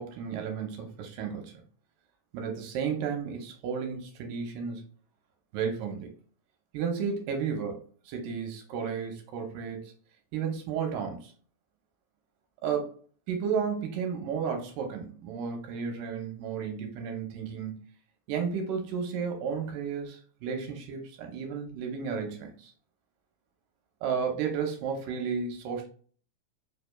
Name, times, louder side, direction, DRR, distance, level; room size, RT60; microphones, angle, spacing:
voice 1, 0.0-1.5 2.3-4.8 5.5-6.1 6.7-9.9 10.3-11.3 12.6-13.0 13.3-17.8 18.3-22.7 24.0-25.9, right 6 dB, 80° right, 3 dB, 2.3 m, -33 dB
4.9 x 3.2 x 2.3 m, 0.43 s
omnidirectional pair, 3.9 m